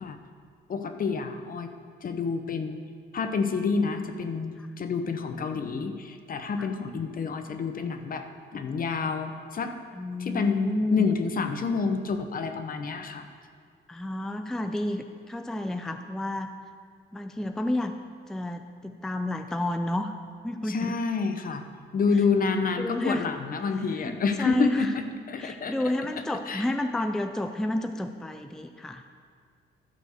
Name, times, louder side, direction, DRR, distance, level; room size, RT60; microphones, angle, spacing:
voice 1, 0.7-1.7 2.0-2.8 3.1-8.2 8.5-9.7 10.2-13.3 20.6-21.6 21.9-25.7 26.5-26.7, left 4 dB, 45° left, 7 dB, 0.8 m, -28 dB
voice 2, 9.9-11.1 13.9-16.5 17.1-17.9 18.3-20.1 20.4-21.0 22.8-23.3 23.9-24.9 25.4-29.0, left 1 dB, ahead, 7 dB, 0.4 m, -31 dB
12.5 x 4.4 x 6.5 m, 2.1 s
cardioid pair, 90°, 20 cm